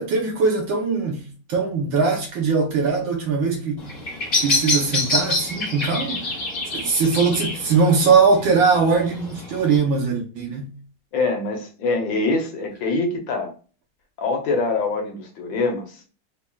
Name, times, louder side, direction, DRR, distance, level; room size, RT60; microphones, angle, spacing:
voice 1, 0.0-3.8 4.4-6.4 6.7-10.7, right 5 dB, 70° right, 1.5 m, -21 dB
Bird vocalization bird call bird song, 3.8-9.8, left 2 dB, 40° left, 1.0 m, -27 dB
voice 2, 11.1-13.5 14.2-16.0, left 3 dB, 70° left, 1.4 m, -24 dB
4.2 x 2.8 x 2.3 m
omnidirectional pair, 2.3 m